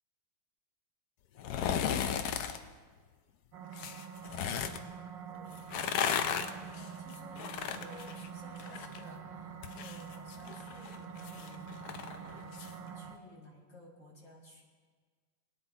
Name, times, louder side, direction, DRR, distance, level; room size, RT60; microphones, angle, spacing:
sound 1, 1.4-2.6 3.7-4.8 5.6-9.0 9.3-12.7 13.1-13.2, left 8 dB, 70° left, 0.9 m, -35 dB
sound 2, 3.5-13.2, right 7 dB, 65° right, 1.4 m, -46 dB
voice 1, 6.3-14.6, left 2 dB, 30° left, -3 dB, 2.4 m, -54 dB
23.5 x 10.0 x 2.8 m, 1.5 s
omnidirectional pair, 2.3 m